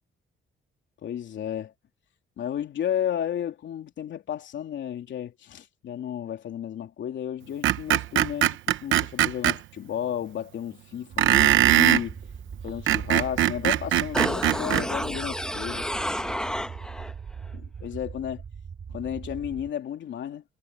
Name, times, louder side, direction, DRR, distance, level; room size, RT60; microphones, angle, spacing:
voice 1, 1.0-1.7 2.4-12.2 12.6-15.9 17.5-18.4 18.9-20.4, left 10 dB, 70° left, 3.2 m, -33 dB
Screech, 7.6-9.6 11.2-12.1 12.7-14.9, right 13 dB, 75° right, 0.9 m, -21 dB
sound 1, 11.1-19.7, right 6 dB, 45° right, 2.0 m, -40 dB
sound 2, 14.1-17.1 17.5-17.6, left 1 dB, 5° left, 1.1 m, -30 dB
cardioid pair, 90°, 20 cm